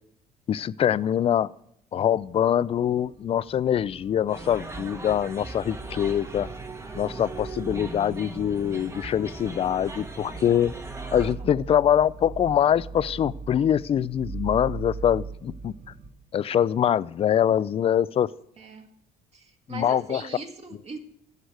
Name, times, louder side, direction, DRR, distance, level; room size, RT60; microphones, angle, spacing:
voice 1, 0.5-1.5 1.9-6.5 6.9-10.7 11.1-15.7 16.3-18.3 19.7-20.2, left 9 dB, 35° left, 0.3 m, -24 dB
sound 1, 2.1-16.1, right 4 dB, 60° right, 2.6 m, -41 dB
sound 2, 4.3-11.3, right 3 dB, 15° right, 1.2 m, -39 dB
voice 2, 18.6-18.9 19.3-21.0, right 4 dB, 40° right, 1.8 m, -40 dB
14.5 x 4.9 x 7.9 m
cardioid pair, 110°, 17 cm